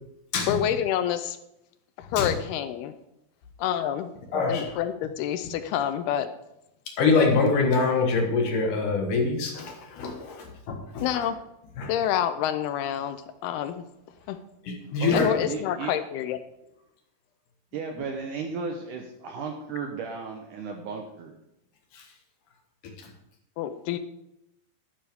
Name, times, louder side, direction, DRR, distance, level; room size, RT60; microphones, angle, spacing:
voice 1, 0.5-1.4 2.0-2.9 3.6-4.1 4.5-6.3 11.0-11.4 11.9-13.2 13.4-13.8 14.3-14.4 15.1-16.4 23.6-24.0, left 10 dB, 80° left, 11 dB, 2.5 m, -27 dB
voice 2, 4.3-4.7 7.0-11.0 11.8-11.9 14.7-15.3 21.9-22.0, left 4 dB, 60° left, 2 dB, 2.7 m, -24 dB
voice 3, 15.0-15.9 17.7-21.3, right 5 dB, 70° right, 3 dB, 2.0 m, -35 dB
12.0 x 11.0 x 3.6 m, 0.83 s
omnidirectional pair, 4.7 m